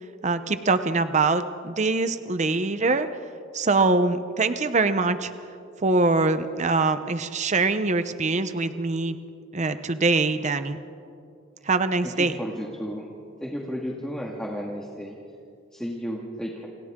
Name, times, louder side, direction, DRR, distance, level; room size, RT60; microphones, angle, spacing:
voice 1, 0.2-3.1 3.5-5.3 5.8-9.2 9.5-10.8 11.6-12.4, right 3 dB, 35° right, 10 dB, 0.7 m, -23 dB
voice 2, 12.0-13.1 13.4-15.2 15.7-16.7, equal, 5° left, -3 dB, 1.9 m, -33 dB
28.5 x 28.0 x 3.7 m, 2.4 s
head